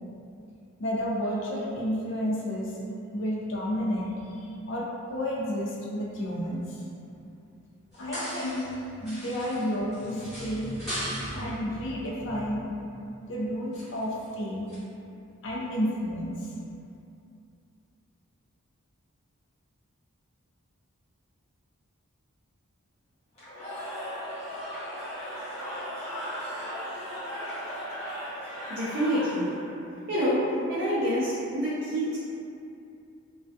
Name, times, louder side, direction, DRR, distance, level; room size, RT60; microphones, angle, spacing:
voice 1, 0.8-2.7 3.1-6.9 8.0-8.6 9.0-12.7 13.2-14.7 15.4-16.5, equal, 55° left, -4 dB, 0.4 m, -31 dB
sound 1, 7.9-8.8 9.0-11.5 13.7-14.2 14.7-14.8, equal, ahead, 0.9 m, -38 dB
Cheering / Crowd, 23.3-29.7, equal, 30° left, 0.8 m, -37 dB
voice 2, 28.7-29.5 30.1-30.4 30.7-32.2, equal, 45° right, -11 dB, 0.4 m, -27 dB
2.3 x 2.2 x 2.6 m, 2.6 s
head